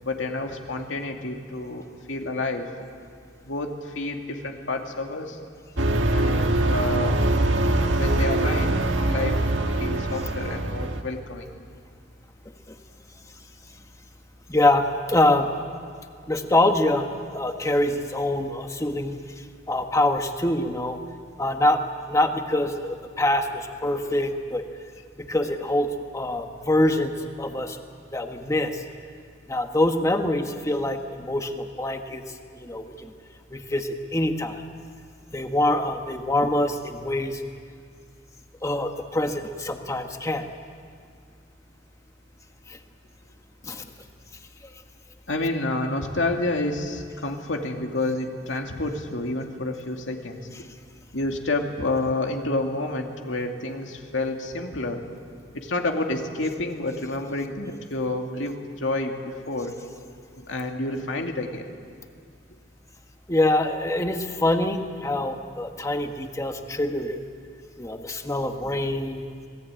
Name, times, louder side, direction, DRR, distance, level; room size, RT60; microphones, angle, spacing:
voice 1, 0.0-2.7 3.4-5.4 6.1-7.2 7.9-9.5 9.8-11.5 45.3-50.5 51.1-55.1 55.5-59.8 60.4-61.7, left 2 dB, 85° left, 3 dB, 2.4 m, -29 dB
sound 1, 5.8-11.0, right 1 dB, 80° right, 1.7 m, -23 dB
voice 2, 14.5-15.5 16.3-17.0 17.3-21.0 21.4-21.8 22.1-24.7 25.2-27.8 28.1-28.8 29.5-33.1 33.5-34.6 35.3-37.4 38.6-40.5 42.7-42.8 43.6-43.8 63.3-67.2 67.8-69.2, left 1 dB, 15° left, 5 dB, 1.5 m, -25 dB
26.5 x 20.0 x 9.0 m, 2.2 s
head